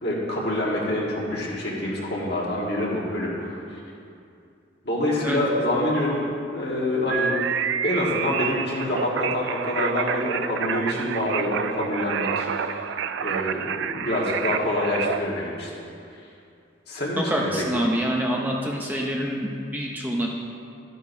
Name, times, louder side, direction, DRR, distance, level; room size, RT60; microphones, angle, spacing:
voice 1, 0.0-3.8 4.8-7.4 7.8-15.7 16.9-17.5, left 1 dB, 55° left, -5 dB, 1.6 m, -26 dB
sound 1, 7.1-15.2, right 7 dB, 75° right, 0.3 m, -28 dB
voice 2, 17.2-20.3, equal, 10° right, -1 dB, 0.6 m, -26 dB
12.0 x 9.4 x 2.7 m, 2.5 s
head